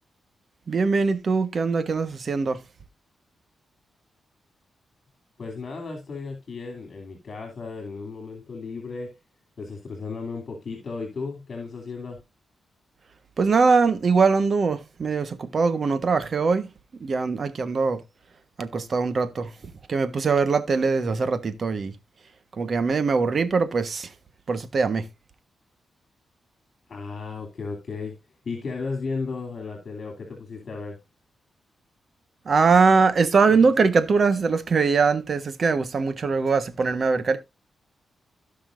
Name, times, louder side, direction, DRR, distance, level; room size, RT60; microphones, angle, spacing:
voice 1, 0.7-2.6 13.4-16.7 17.0-18.0 18.6-19.5 19.9-21.9 22.6-24.1 24.5-25.1 32.5-37.4, right 4 dB, 50° right, 1.3 m, -22 dB
voice 2, 5.4-9.2 9.6-12.2 26.9-31.0, left 4 dB, 50° left, 2.8 m, -34 dB
17.0 x 5.6 x 2.6 m
cardioid pair, 90°, 0 cm